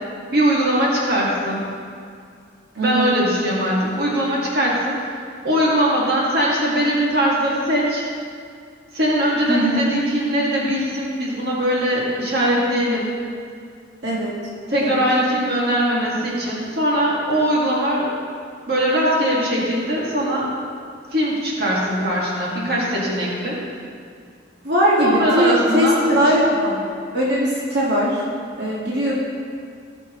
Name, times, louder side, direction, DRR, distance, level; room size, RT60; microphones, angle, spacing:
voice 1, 0.3-1.6 2.8-5.0 5.4-8.0 8.9-13.1 14.7-18.1 18.7-20.5 21.1-23.6 25.0-26.2, equal, 55° right, -5 dB, 2.1 m, -21 dB
voice 2, 2.8-3.2 9.5-9.8 14.0-14.3 14.8-15.0 24.6-26.9 27.1-28.2 28.6-29.1, equal, 70° right, -6 dB, 1.9 m, -20 dB
17.5 x 6.8 x 3.1 m, 2.2 s
head